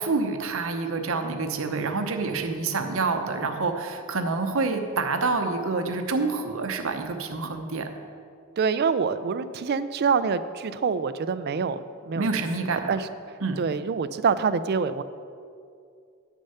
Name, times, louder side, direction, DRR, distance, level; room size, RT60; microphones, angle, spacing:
voice 1, 0.0-7.9 12.2-13.0 13.4-13.6, right 3 dB, 60° right, 6 dB, 0.8 m, -27 dB
voice 2, 8.6-12.3 12.7-13.1 13.6-15.0, right 5 dB, 45° right, 13 dB, 0.3 m, -26 dB
8.4 x 6.4 x 5.6 m, 2.3 s
head